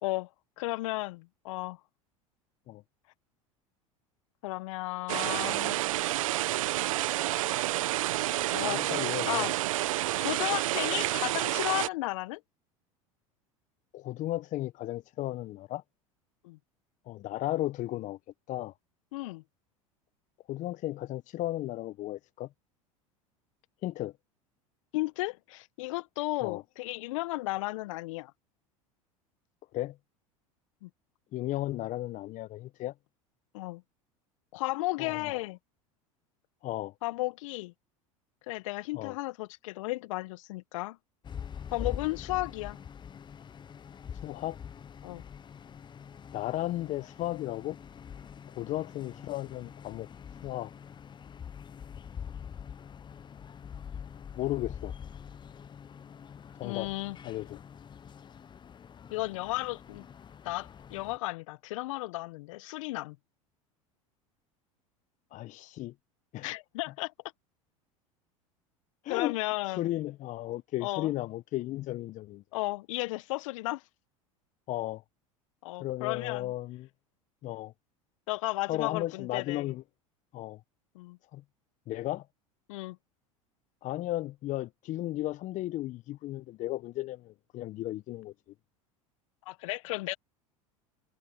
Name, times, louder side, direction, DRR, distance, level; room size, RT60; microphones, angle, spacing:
voice 1, 0.6-1.8 4.4-5.8 8.5-9.5 10.2-12.4 16.4-16.6 19.1-19.4 24.9-28.3 30.8-30.9 33.5-33.8 34.5-35.6 37.0-37.7 38.5-41.0 41.7-42.8 45.0-45.2 56.6-57.2 59.1-60.0 60.4-63.2 66.4-67.1 69.1-69.9 70.8-71.1 72.5-73.8 75.6-76.5 78.3-79.7 80.9-81.2 82.7-83.0 89.4-90.1, left 20 dB, 65° left, 1.6 m, -34 dB
sound 1, 5.1-11.9, right 15 dB, 70° right, 1.3 m, -29 dB
voice 2, 8.7-9.5 13.9-15.8 17.1-18.2 18.5-18.7 20.5-22.5 23.8-24.1 26.4-26.6 29.7-30.0 31.3-32.9 35.0-35.3 36.6-36.9 38.9-39.2 41.8-41.9 44.2-44.6 46.3-47.8 48.6-50.1 50.4-50.7 54.3-54.9 56.6-56.9 57.2-57.6 65.3-65.9 66.3-66.5 69.0-69.4 69.7-72.4 74.7-75.0 75.8-76.9 77.4-77.7 78.7-79.8 80.3-80.6 81.3-81.4 81.9-82.3 83.8-88.3, left 15 dB, 45° left, 1.1 m, -34 dB
sound 2, 41.2-61.2, left 7 dB, 25° left, 1.0 m, -45 dB
hypercardioid pair, 80°, 18 cm